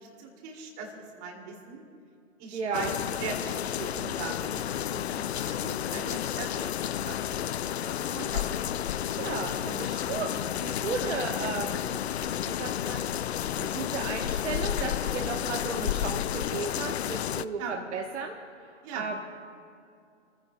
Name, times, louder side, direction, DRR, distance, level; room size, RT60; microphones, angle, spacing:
voice 1, 0.2-1.8 2.4-2.9 3.2-4.6 4.9-7.2 7.6-8.5 17.6-17.8 18.8-19.0, right 5 dB, 30° right, 1 dB, 2.5 m, -40 dB
voice 2, 2.5-2.9 9.2-12.0 12.4-13.0 13.6-18.3 18.6-19.2, right 4 dB, 60° right, 1 dB, 1.2 m, -35 dB
sound 1, 2.7-17.4, left 10 dB, 60° left, 0.5 m, -31 dB
29.5 x 15.0 x 2.2 m, 2.5 s
figure-of-eight pair, 125°, 38 cm